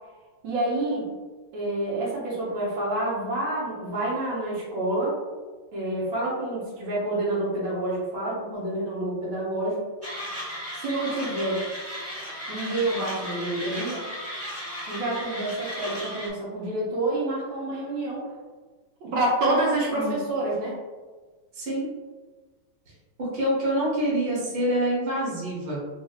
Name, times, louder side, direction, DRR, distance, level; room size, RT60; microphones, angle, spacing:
voice 1, 0.4-1.1 1.5-5.2 5.7-9.8 10.7-11.6 12.5-14.0 14.9-18.3 19.0-20.8, right 1 dB, 70° right, -6 dB, 1.6 m, -28 dB
Mechanisms, 10.0-16.3, equal, 10° right, 0.6 m, -35 dB
voice 2, 21.5-21.9 23.2-25.8, right 1 dB, 35° right, -7 dB, 1.0 m, -26 dB
4.2 x 2.6 x 2.4 m, 1.3 s
omnidirectional pair, 2.2 m